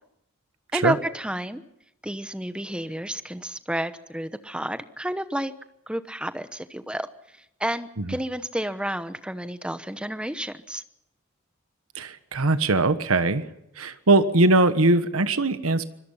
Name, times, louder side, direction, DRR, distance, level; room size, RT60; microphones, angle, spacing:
voice 1, 0.7-1.6 2.0-5.5 5.9-7.1 7.4-10.8, right 1 dB, 5° right, 11 dB, 1.0 m, -31 dB
voice 2, 11.9-13.5 13.8-15.8, right 2 dB, 80° right, 11 dB, 1.3 m, -21 dB
25.5 x 21.5 x 5.7 m, 0.84 s
head